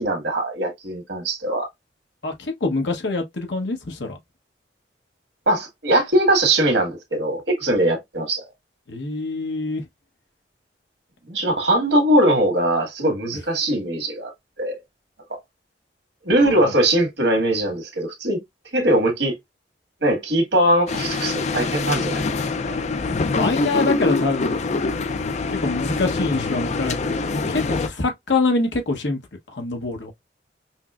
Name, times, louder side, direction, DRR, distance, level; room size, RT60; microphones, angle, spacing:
voice 1, 0.0-1.7 5.5-8.4 11.3-14.3 14.6-14.8 16.2-18.4 18.7-19.3 20.0-22.2 22.7-22.8, right 1 dB, 80° right, 1.8 m, -21 dB
voice 2, 2.2-4.2 8.9-9.9 16.4-16.7 23.3-24.7 25.5-29.2 29.5-30.1, left 3 dB, 80° left, 1.1 m, -25 dB
sound 1, 20.9-27.9, left 3 dB, 40° left, 0.4 m, -25 dB
5.6 x 2.1 x 2.4 m
head